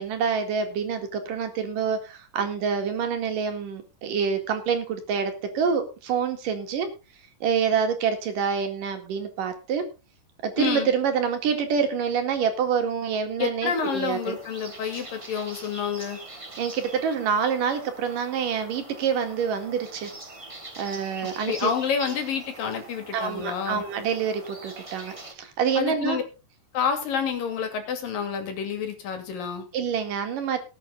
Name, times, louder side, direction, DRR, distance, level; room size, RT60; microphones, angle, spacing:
voice 1, 0.0-6.9 7.4-9.8 10.4-14.4 16.6-20.1 20.8-21.5 23.1-26.2 29.7-30.6, right 6 dB, 75° right, 6 dB, 3.6 m, -26 dB
voice 2, 10.6-10.9 13.4-16.2 21.4-23.8 25.8-26.2 26.7-29.7, left 6 dB, 85° left, 7 dB, 4.2 m, -28 dB
sound 1, 13.6-25.3, right 2 dB, 45° right, 0.4 m, -43 dB
19.0 x 8.4 x 3.9 m, 0.30 s
omnidirectional pair, 3.9 m